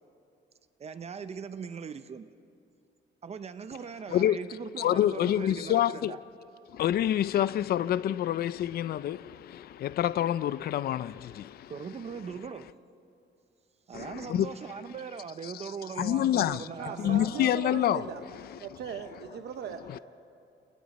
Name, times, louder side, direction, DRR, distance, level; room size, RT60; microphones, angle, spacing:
voice 1, 0.8-2.3 3.2-6.2 11.7-12.7 13.9-17.3, right 6 dB, 35° right, 0.6 m, -40 dB
voice 2, 4.8-6.1 6.7-11.7 13.9-14.5 15.4-15.7 16.0-16.7 17.0-18.1 19.9-20.0, left 11 dB, 55° left, 0.4 m, -27 dB
voice 3, 16.8-18.2 18.6-19.8, right 7 dB, 60° right, 0.9 m, -38 dB
29.5 x 28.0 x 4.2 m
cardioid pair, 170°, 19 cm